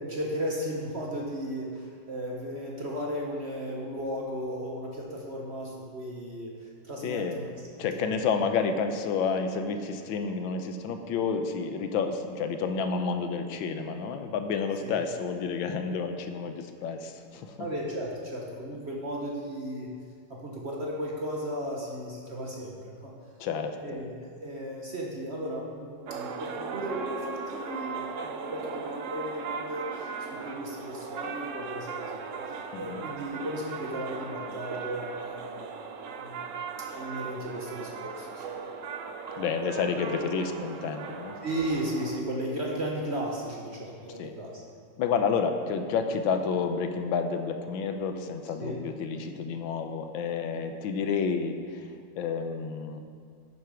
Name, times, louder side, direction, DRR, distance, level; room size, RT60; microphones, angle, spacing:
voice 1, 0.0-7.5 7.8-8.2 14.8-15.0 17.6-19.9 20.3-23.1 23.8-32.4 32.7-35.8 36.2-36.6 36.9-38.4 41.4-44.6 48.6-48.8, equal, 40° right, -2 dB, 1.1 m, -35 dB
voice 2, 7.0-7.4 7.8-17.6 23.4-23.8 32.7-33.0 39.4-41.3 44.2-44.3 45.0-53.0, left 5 dB, 80° left, 7 dB, 1.5 m, -30 dB
sound 1, 26.1-42.2, right 5 dB, 70° right, 0.7 m, -38 dB
10.5 x 6.9 x 4.9 m, 2.2 s
omnidirectional pair, 2.1 m